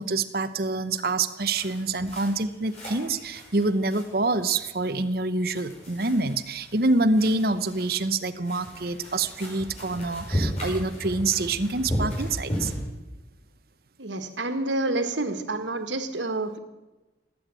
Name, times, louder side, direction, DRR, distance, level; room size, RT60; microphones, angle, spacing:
voice 1, 0.0-12.7, right 2 dB, 55° right, 11 dB, 0.9 m, -26 dB
sound 1, 1.5-12.7, equal, 35° left, 6.1 m, -35 dB
voice 2, 14.0-16.6, right 2 dB, 90° right, 9 dB, 1.7 m, -28 dB
18.5 x 8.7 x 8.9 m, 1.1 s
head